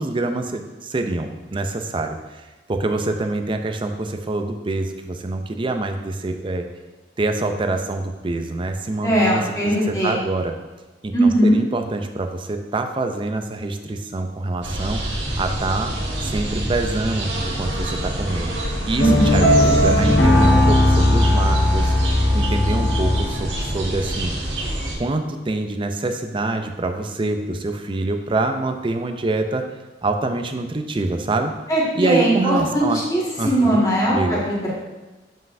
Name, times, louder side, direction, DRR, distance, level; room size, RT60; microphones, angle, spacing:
voice 1, 0.0-6.6 7.2-10.5 11.0-15.9 16.2-18.5 18.9-22.0 22.3-24.3 25.0-29.6 30.0-31.5 31.9-33.0 33.4-33.8 34.1-34.4, right 2 dB, 30° right, 6 dB, 0.5 m, -25 dB
voice 2, 9.0-10.2 11.1-11.6 19.0-19.3 31.7-34.7, right 1 dB, 20° left, -6 dB, 1.7 m, -19 dB
sound 1, 14.6-24.9, right 1 dB, 70° right, 1.4 m, -27 dB
sound 2, 19.0-23.5, left 1 dB, 75° left, 1.1 m, -17 dB
7.5 x 5.5 x 2.6 m, 1.2 s
head